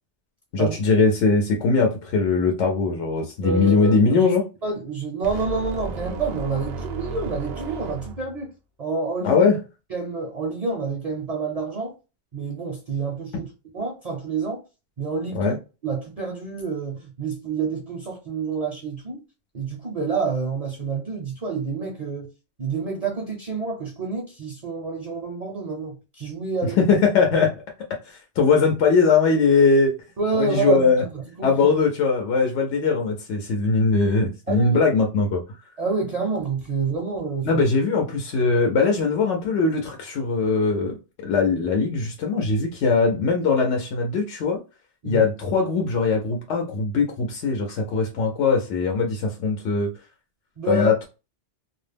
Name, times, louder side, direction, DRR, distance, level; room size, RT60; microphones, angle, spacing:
voice 1, 0.5-4.4 9.2-9.6 15.3-15.6 26.6-27.5 28.1-29.9 30.3-31.0 31.4-35.4 37.4-44.6 45.0-49.9 50.7-51.1, left 4 dB, 80° left, 0.9 m, -21 dB
voice 2, 3.4-4.3 4.6-8.5 8.8-9.5 9.9-11.9 12.3-13.5 13.7-14.6 15.0-15.6 15.8-19.2 19.5-22.3 22.6-26.8 30.2-31.1 31.4-31.5 34.5-34.8 35.8-37.7 45.0-45.3 50.6-50.9, right 4 dB, 50° right, 0.5 m, -28 dB
sound 1, 5.2-8.5, right 3 dB, 70° right, 0.8 m, -34 dB
2.3 x 2.0 x 3.2 m
omnidirectional pair, 1.2 m